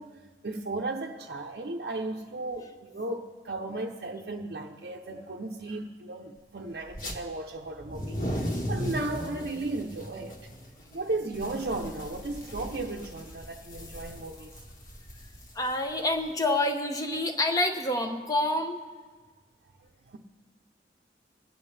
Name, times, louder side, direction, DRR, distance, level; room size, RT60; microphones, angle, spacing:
voice 1, 0.0-10.4 10.9-14.6 20.1-20.2, right 2 dB, 65° right, 0.7 m, -35 dB
sound 1, 6.9-7.2 7.7-16.3, equal, 50° left, 1.5 m, -37 dB
voice 2, 15.5-18.8, left 1 dB, 20° left, 0.9 m, -27 dB
22.5 x 9.1 x 3.3 m
head